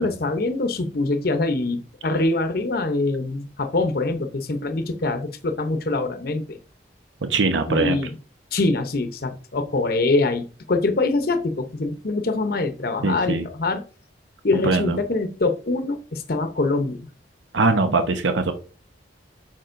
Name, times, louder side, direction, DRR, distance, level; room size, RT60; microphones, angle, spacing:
voice 1, 0.0-6.6 7.7-8.1 8.5-13.8 14.4-17.0, left 2 dB, 55° left, 7 dB, 0.7 m, -24 dB
voice 2, 7.2-8.0 13.0-13.4 14.5-15.0 17.5-18.5, right 3 dB, 85° right, 7 dB, 0.8 m, -21 dB
8.8 x 5.9 x 2.5 m, 0.37 s
head